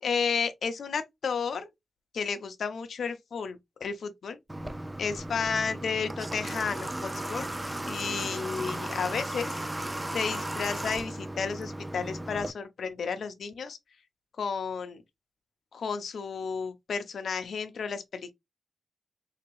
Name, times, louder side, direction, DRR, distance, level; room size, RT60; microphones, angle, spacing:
voice 1, 0.0-1.7 2.1-4.4 5.0-7.4 7.9-13.8 14.4-15.0 15.7-18.3, left 5 dB, 70° left, 0.6 m, -32 dB
Water / Water tap faucet, 4.5-12.5, right 1 dB, 15° right, 0.3 m, -35 dB
3.4 x 2.9 x 3.0 m
wide cardioid pair, 105°, 0 cm